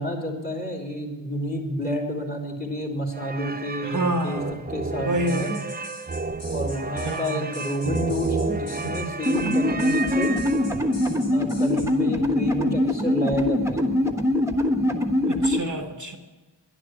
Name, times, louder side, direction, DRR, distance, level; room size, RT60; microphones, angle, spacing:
voice 1, 0.0-4.4 4.7-5.5 6.5-10.3 11.3-13.8, equal, 20° left, 0 dB, 3.5 m, -30 dB
sound 1, 3.1-11.0, right 4 dB, 20° right, 0.4 m, -31 dB
voice 2, 3.8-4.6 5.0-5.6 7.0-7.5 15.3-16.2, right 1 dB, 40° right, 4 dB, 1.2 m, -28 dB
sound 2, 5.3-11.9, left 2 dB, 70° left, 3.2 m, -44 dB
sound 3, 9.3-15.6, left 1 dB, 5° right, 1.3 m, -23 dB
11.0 x 11.0 x 9.9 m, 1.2 s
wide cardioid pair, 100°, 46 cm